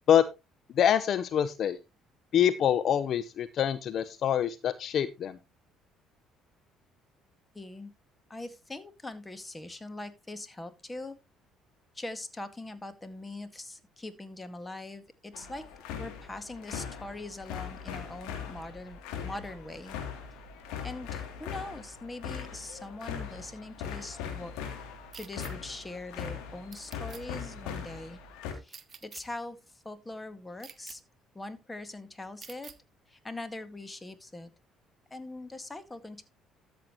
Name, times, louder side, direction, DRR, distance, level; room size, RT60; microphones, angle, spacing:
voice 1, 0.8-1.8 2.3-5.4, left 9 dB, 55° left, 13 dB, 0.7 m, -25 dB
voice 2, 7.5-7.9 8.3-11.2 11.9-15.6 16.0-20.0 20.8-24.5 25.1-28.2 28.5-31.0 31.3-32.7 33.1-34.5 35.1-36.2, left 2 dB, 20° left, 11 dB, 1.9 m, -42 dB
sound 1, 15.3-28.5, left 7 dB, 75° left, 3.0 m, -40 dB
sound 2, 25.1-25.5 26.7-27.2 28.7-29.2 30.6-31.0 32.4-32.8, right 6 dB, 40° right, 1.4 m, -47 dB
13.5 x 7.8 x 3.1 m, 0.25 s
hypercardioid pair, 60°, 0 cm